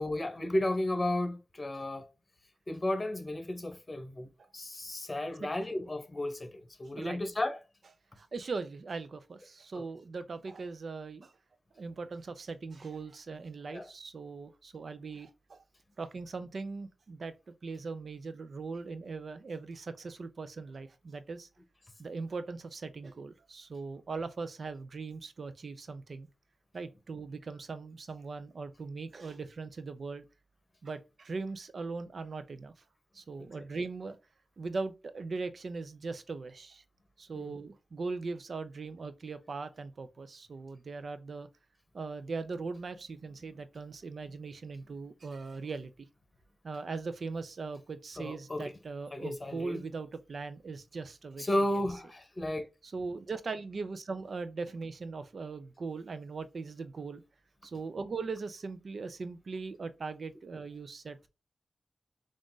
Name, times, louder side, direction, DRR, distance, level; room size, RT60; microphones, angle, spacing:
voice 1, 0.0-2.1 2.7-4.3 4.5-7.6 9.7-9.8 13.7-13.9 33.6-33.7 37.3-37.4 48.2-48.7 49.1-49.8 51.4-52.7, left 1 dB, 30° left, 0.9 m, -33 dB
voice 2, 8.2-11.3 11.8-15.6 16.0-17.3 17.6-21.5 22.0-26.3 26.7-30.2 30.8-32.7 33.1-34.2 34.6-36.8 37.2-41.5 41.9-45.9 46.6-51.5 52.8-57.2 57.6-61.3, right 4 dB, 65° right, 0.5 m, -40 dB
3.7 x 2.5 x 3.8 m
cardioid pair, 65°, 0 cm